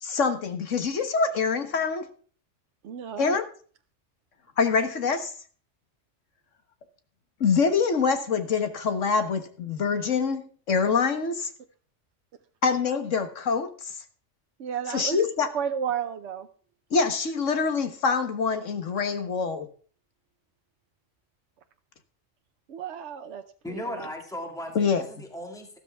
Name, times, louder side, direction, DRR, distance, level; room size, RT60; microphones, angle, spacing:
voice 1, 0.0-2.1 3.2-3.4 4.6-5.3 7.4-11.5 12.6-14.0 14.9-15.5 16.9-19.7 24.7-25.0, left 5 dB, 90° left, 8 dB, 1.7 m, -25 dB
voice 2, 2.8-3.4 14.6-15.2 15.5-16.5 22.7-23.4 23.7-24.1, right 8 dB, 70° right, 7 dB, 1.1 m, -32 dB
voice 3, 23.6-25.8, left 1 dB, 5° left, 3 dB, 2.0 m, -37 dB
13.5 x 13.0 x 3.5 m, 0.42 s
omnidirectional pair, 1.2 m